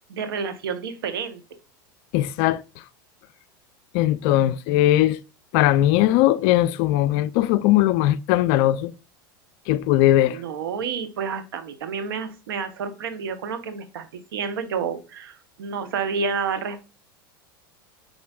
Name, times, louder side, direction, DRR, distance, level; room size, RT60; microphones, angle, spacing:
voice 1, 0.1-1.4 10.3-16.9, right 6 dB, 80° right, 0.8 m, -30 dB
voice 2, 2.1-2.6 3.9-5.2 5.5-8.9 9.7-10.4, left 14 dB, 55° left, 0.4 m, -19 dB
5.2 x 3.8 x 2.3 m
hypercardioid pair, 95°, 12 cm